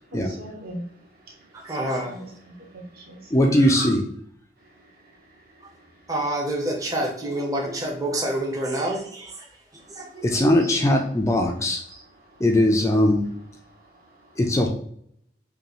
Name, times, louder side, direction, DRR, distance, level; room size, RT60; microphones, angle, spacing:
voice 1, 0.1-3.4 4.7-6.0 9.8-10.2 10.6-10.7 11.9-12.4 13.7-14.4, right 1 dB, 55° right, 1.1 m, -43 dB
voice 2, 1.5-2.2 3.5-3.9 5.6-5.7 6.1-9.5 9.7-10.4, right 1 dB, 20° right, 0.7 m, -28 dB
voice 3, 3.3-4.1 10.2-11.8 12.4-13.3 14.4-14.7, left 1 dB, 15° left, 0.3 m, -20 dB
5.3 x 2.3 x 3.0 m
head